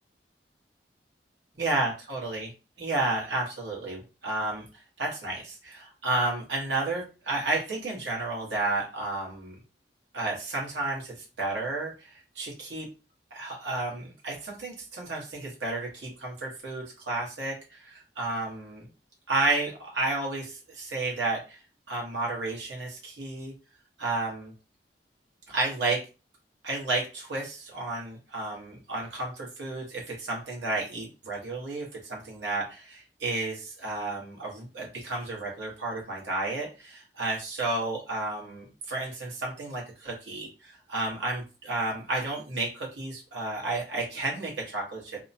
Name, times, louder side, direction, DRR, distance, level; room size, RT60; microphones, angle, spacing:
voice 1, 1.6-2.5 2.8-4.6 5.0-9.5 10.1-12.8 13.3-18.9 19.3-21.6 21.9-23.5 24.0-24.5 25.5-26.0 26.6-45.2, right 2 dB, 75° right, -2 dB, 1.2 m, -32 dB
2.8 x 2.2 x 2.7 m, 0.33 s
head